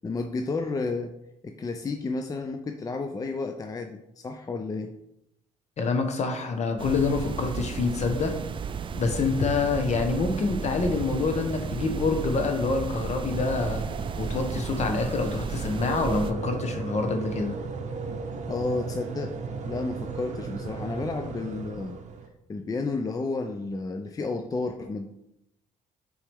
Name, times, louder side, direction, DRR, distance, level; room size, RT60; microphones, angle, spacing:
voice 1, 0.0-1.1 1.4-5.0 18.5-19.4 19.6-22.0 22.5-25.1, left 3 dB, 25° left, 6 dB, 0.5 m, -31 dB
voice 2, 5.8-8.4 8.9-13.8 14.2-17.5, left 4 dB, 50° left, 5 dB, 1.2 m, -26 dB
sound 1, 6.8-16.3, right 6 dB, 35° right, 0.4 m, -34 dB
sound 2, 13.3-22.3, right 5 dB, 55° right, 0.9 m, -36 dB
7.2 x 4.7 x 3.5 m, 0.83 s
cardioid pair, 95°, 15 cm